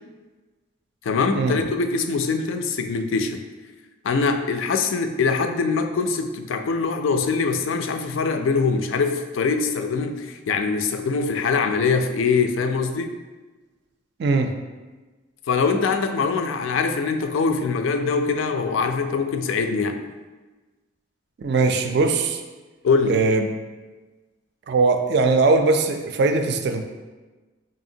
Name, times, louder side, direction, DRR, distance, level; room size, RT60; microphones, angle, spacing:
voice 1, 1.0-3.4 4.0-13.1 15.5-20.0 22.8-23.2, left 4 dB, 75° left, 7 dB, 0.3 m, -23 dB
voice 2, 14.2-14.5 21.4-22.4 23.1-23.5 24.7-26.8, right 3 dB, 55° right, 6 dB, 0.3 m, -20 dB
4.9 x 2.8 x 2.7 m, 1.2 s
head